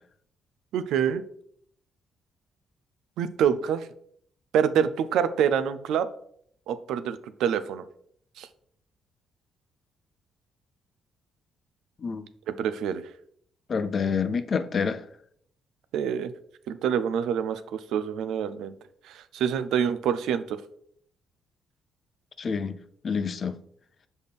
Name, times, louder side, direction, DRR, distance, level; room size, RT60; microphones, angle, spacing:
voice 1, 0.7-1.2 3.2-3.9 4.5-6.1 6.7-7.8 8.4-8.5 12.6-13.0 15.9-16.3 16.7-18.7 19.1-20.6, right 8 dB, 80° right, 0.4 m, -26 dB
voice 2, 13.7-15.0 22.4-22.7 23.0-23.6, left 6 dB, 45° left, 0.5 m, -27 dB
6.7 x 4.2 x 3.5 m
cardioid pair, 90°, 0 cm